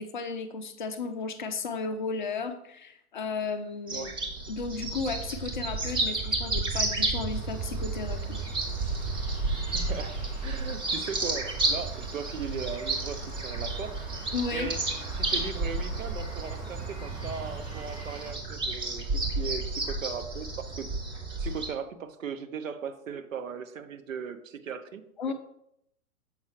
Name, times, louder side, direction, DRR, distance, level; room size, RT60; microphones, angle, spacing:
voice 1, 0.0-4.1 4.5-8.4 14.3-14.7 25.2-25.3, left 4 dB, 35° left, 8 dB, 0.4 m, -34 dB
sound 1, 3.9-21.7, right 2 dB, 10° right, 0.8 m, -32 dB
sound 2, 7.3-18.3, equal, 80° right, 2.4 m, -46 dB
voice 2, 9.7-14.0 14.5-14.9 15.2-20.9 21.4-25.3, right 6 dB, 60° right, 10 dB, 0.8 m, -38 dB
7.3 x 5.4 x 3.1 m, 0.76 s
figure-of-eight pair, 110°, 43 cm